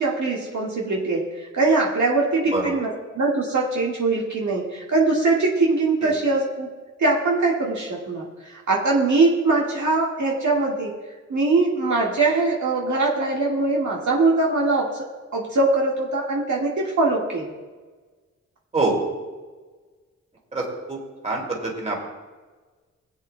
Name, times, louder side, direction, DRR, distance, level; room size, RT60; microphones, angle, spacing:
voice 1, 0.0-6.7 7.0-11.0 11.3-15.0 15.3-17.5, right 3 dB, 65° right, -4 dB, 1.8 m, -22 dB
voice 2, 20.5-21.0 21.2-22.1, right 3 dB, 20° right, -1 dB, 2.5 m, -25 dB
21.0 x 8.2 x 2.2 m, 1.3 s
wide cardioid pair, 95°, 31 cm